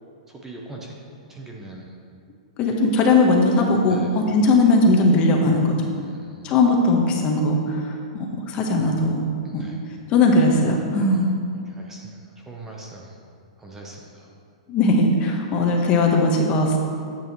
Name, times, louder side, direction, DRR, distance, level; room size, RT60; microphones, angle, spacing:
voice 1, 0.3-1.9 3.9-4.1 6.0-6.5 9.4-9.8 11.1-11.2 11.7-13.2 13.6-14.3, right 2 dB, 10° right, -1 dB, 0.8 m, -41 dB
voice 2, 2.6-5.8 6.4-9.2 9.5-9.6 10.1-11.3 14.7-16.8, left 2 dB, 30° left, 1 dB, 1.2 m, -19 dB
10.0 x 8.1 x 3.1 m, 2.3 s
hypercardioid pair, 145°, 4 cm